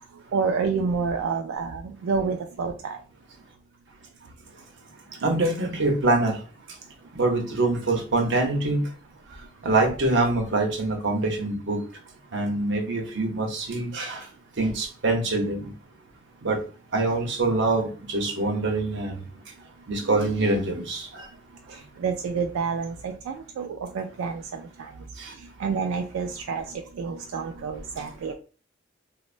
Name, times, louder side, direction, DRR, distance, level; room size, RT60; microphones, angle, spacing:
voice 1, 0.3-3.0 20.0-20.6 22.0-24.9 25.4-28.3, right 5 dB, 85° right, 0.3 m, -29 dB
voice 2, 5.2-6.4 7.2-8.8 9.6-11.8 12.3-14.2 14.6-15.6 16.4-16.6 16.9-19.1 19.9-21.1, right 2 dB, 60° right, 0.7 m, -24 dB
3.1 x 2.1 x 2.4 m
head